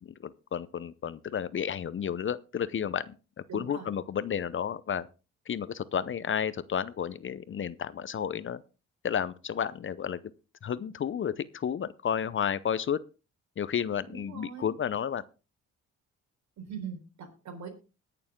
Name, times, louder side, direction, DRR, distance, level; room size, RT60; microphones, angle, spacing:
voice 1, 0.0-3.2 3.5-5.1 5.5-8.6 9.0-10.2 10.6-13.0 13.6-15.2, left 8 dB, 40° left, 0.7 m, -32 dB
voice 2, 3.5-3.9 14.1-14.7 16.6-17.7, right 6 dB, 65° right, 4.2 m, -41 dB
20.5 x 6.9 x 3.7 m
cardioid pair, 90°, 30 cm